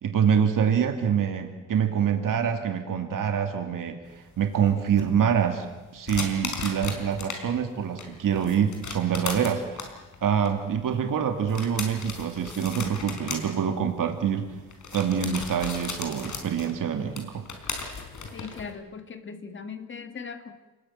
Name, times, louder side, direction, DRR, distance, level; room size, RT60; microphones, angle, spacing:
voice 1, 0.0-9.9 10.2-14.5 14.9-17.4, right 8 dB, 75° right, 5 dB, 2.4 m, -26 dB
sound 1, 4.1-7.4 7.8-18.7, left 5 dB, 65° left, 4.6 m, -37 dB
voice 2, 18.3-20.5, left 5 dB, 35° left, 7 dB, 1.7 m, -39 dB
29.5 x 20.5 x 8.8 m, 1.2 s
wide cardioid pair, 175°, 32 cm